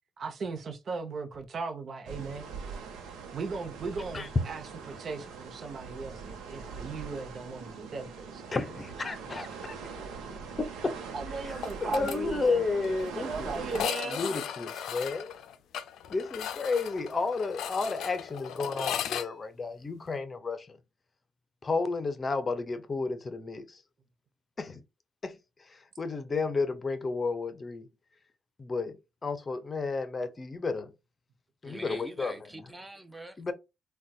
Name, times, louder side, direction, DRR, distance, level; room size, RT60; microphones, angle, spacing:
voice 1, 0.2-2.5 3.3-8.4 11.1-12.6 13.2-14.2, right 4 dB, 55° right, 0.8 m, -37 dB
sound 1, 2.0-13.8, right 5 dB, 85° right, 0.8 m, -42 dB
voice 2, 8.5-9.8 10.6-10.9 11.5-13.6 14.1-15.3 16.1-20.8 21.6-23.8 24.6-24.8 25.2-25.4 25.7-27.9 28.6-30.9 31.6-32.3 33.4-33.5, left 4 dB, 30° left, 0.7 m, -32 dB
sound 2, 11.6-12.2 12.5-12.6 12.8-12.9 13.7-19.3, left 9 dB, 80° left, 0.4 m, -36 dB
voice 3, 31.6-33.5, right 1 dB, 15° right, 0.7 m, -44 dB
3.9 x 2.3 x 2.3 m
cardioid pair, 90°, 0 cm